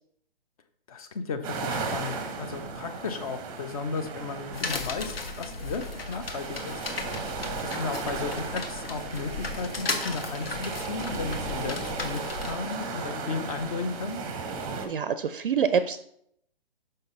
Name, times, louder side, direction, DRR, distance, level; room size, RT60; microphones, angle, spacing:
voice 1, 0.9-6.8 7.6-14.2, left 4 dB, 35° left, 9 dB, 0.7 m, -34 dB
sound 1, 1.4-14.9, right 4 dB, 15° right, 0.7 m, -36 dB
sound 2, 4.5-12.5, left 3 dB, 70° left, 1.1 m, -36 dB
voice 2, 14.8-16.0, right 7 dB, 60° right, 12 dB, 0.5 m, -26 dB
5.5 x 5.4 x 3.8 m, 0.70 s
figure-of-eight pair, 135°, 31 cm